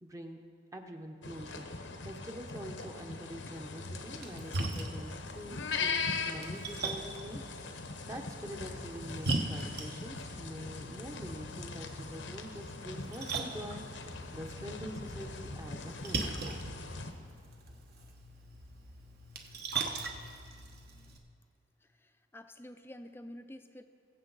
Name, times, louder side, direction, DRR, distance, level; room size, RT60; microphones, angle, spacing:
voice 1, 0.0-0.4 0.7-16.3, equal, 15° right, 4 dB, 0.8 m, -45 dB
sound 1, 1.2-17.1, left 4 dB, 80° left, 1.0 m, -41 dB
Splash splatter, 4.1-21.2, right 3 dB, 55° right, 1.1 m, -41 dB
voice 2, 21.8-23.8, left 1 dB, 10° left, 8 dB, 0.5 m, -49 dB
21.5 x 7.5 x 4.0 m, 2.3 s
head